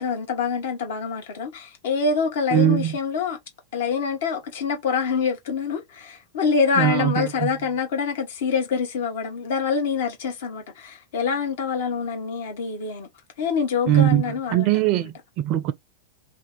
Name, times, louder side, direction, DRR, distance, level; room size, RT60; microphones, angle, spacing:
voice 1, 0.0-3.4 3.7-13.1 13.4-15.1, left 5 dB, 55° left, 1.0 m, -26 dB
voice 2, 2.5-3.0 6.8-7.5 13.9-15.7, right 11 dB, 40° right, 0.4 m, -21 dB
2.6 x 2.3 x 3.8 m
figure-of-eight pair, 90°, 0 cm